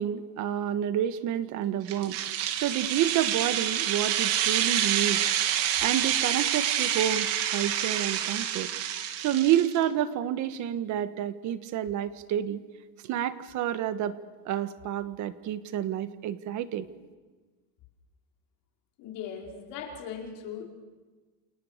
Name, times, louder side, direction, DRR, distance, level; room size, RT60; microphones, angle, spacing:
voice 1, 0.0-5.3 5.8-8.7 9.2-12.6 13.0-14.2 14.4-16.9, right 11 dB, 40° right, 11 dB, 1.5 m, -29 dB
sound 1, 1.9-9.8, right 10 dB, 60° right, 3.0 m, -28 dB
voice 2, 19.0-20.6, left 7 dB, 50° left, 1 dB, 5.0 m, -39 dB
29.5 x 29.0 x 6.7 m, 1.3 s
cardioid pair, 160°, 43 cm